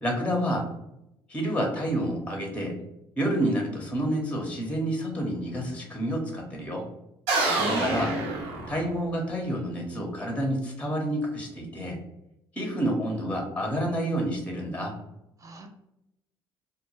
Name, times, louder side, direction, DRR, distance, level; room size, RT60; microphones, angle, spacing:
voice 1, 0.0-0.7 1.3-2.8 3.2-6.9 7.5-8.2 8.7-12.0 12.5-15.0, equal, 10° left, 1 dB, 0.7 m, -29 dB
sound 1, 7.3-9.2, right 3 dB, 65° right, 0.8 m, -27 dB
voice 2, 7.5-8.4 15.4-15.7, right 2 dB, 25° right, 4 dB, 0.4 m, -35 dB
2.2 x 2.1 x 3.0 m, 0.85 s
figure-of-eight pair, 50°, 13 cm